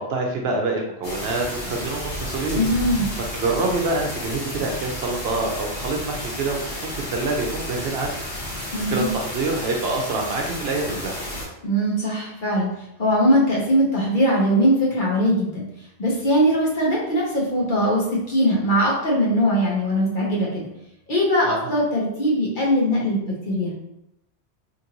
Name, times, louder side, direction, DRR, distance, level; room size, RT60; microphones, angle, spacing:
voice 1, 0.0-2.6 3.3-8.2 8.5-11.2 21.4-21.6, right 3 dB, 70° right, 1 dB, 0.8 m, -26 dB
sound 1, 1.0-11.5, left 1 dB, 80° left, 1.2 m, -32 dB
voice 2, 2.5-3.1 8.7-9.1 11.6-12.7 13.0-15.6 16.0-20.7 21.1-23.7, equal, 50° left, -4 dB, 1.0 m, -21 dB
2.9 x 2.5 x 2.8 m, 0.81 s
omnidirectional pair, 1.1 m